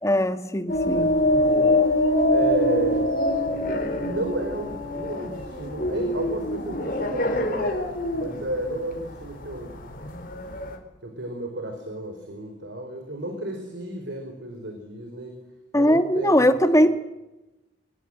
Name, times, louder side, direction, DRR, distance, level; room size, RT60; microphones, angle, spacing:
voice 1, 0.0-1.1 15.7-16.9, equal, 15° left, 8 dB, 1.7 m, -20 dB
sound 1, 0.7-10.8, left 1 dB, 50° left, 4.6 m, -24 dB
voice 2, 0.9-1.9 2.3-3.1 4.0-9.8 11.0-15.4 15.7-16.9, right 1 dB, 75° right, 5 dB, 4.8 m, -32 dB
24.5 x 20.5 x 8.0 m, 0.99 s
head